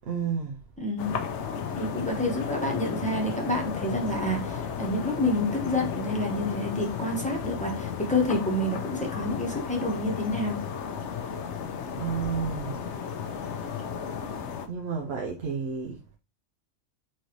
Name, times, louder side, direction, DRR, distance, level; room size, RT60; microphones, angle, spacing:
voice 1, 0.1-0.6 12.0-12.8 13.6-13.7 14.7-16.2, right 6 dB, 60° right, 0.9 m, -31 dB
voice 2, 0.8-1.1 1.7-10.6, left 1 dB, 5° left, 1.0 m, -28 dB
sound 1, 1.0-14.7, left 7 dB, 70° left, 0.9 m, -34 dB
5.9 x 2.7 x 3.0 m
omnidirectional pair, 1.3 m